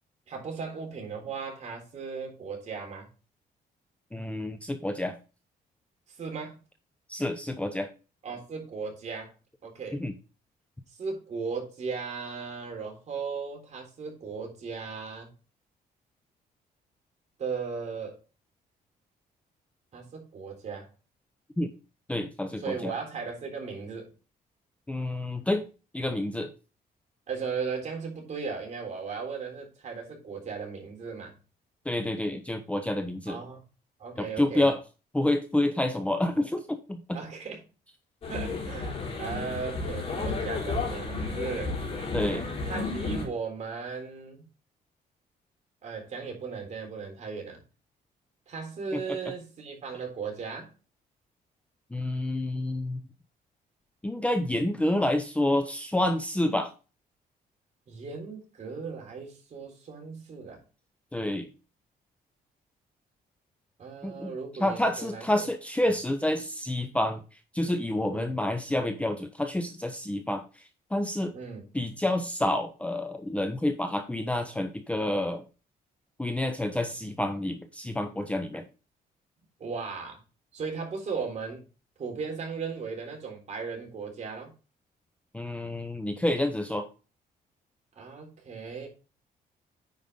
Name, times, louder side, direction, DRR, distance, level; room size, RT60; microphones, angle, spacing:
voice 1, 0.3-3.1 6.2-6.6 8.2-9.3 9.6-10.0 11.0-15.3 17.4-18.2 19.9-20.9 22.6-24.1 27.3-31.3 33.3-33.6 34.0-34.7 37.1-37.6 38.3-41.8 42.6-44.5 45.8-47.6 48.5-50.7 57.9-60.6 63.8-65.5 65.8-65.9 68.1-68.4 71.3-71.7 79.6-80.2 80.5-81.6 82.0-84.5 88.0-88.9, right 5 dB, 45° right, 1 dB, 3.6 m, -37 dB
voice 2, 4.1-5.2 7.1-7.9 9.9-10.1 21.6-21.7 22.1-22.9 24.9-25.6 25.9-26.5 31.9-33.4 34.2-34.8 35.1-37.2 42.1-42.5 48.9-49.0 51.9-53.0 54.0-56.7 61.1-61.5 64.0-64.3 64.6-67.2 67.5-70.4 70.9-71.3 71.7-75.4 76.2-78.6 85.3-86.9, left 1 dB, 10° left, 7 dB, 0.7 m, -28 dB
sound 1, 38.2-43.2, left 3 dB, 40° left, 3.9 m, -32 dB
9.5 x 5.2 x 3.8 m, 0.33 s
cardioid pair, 135°, 16 cm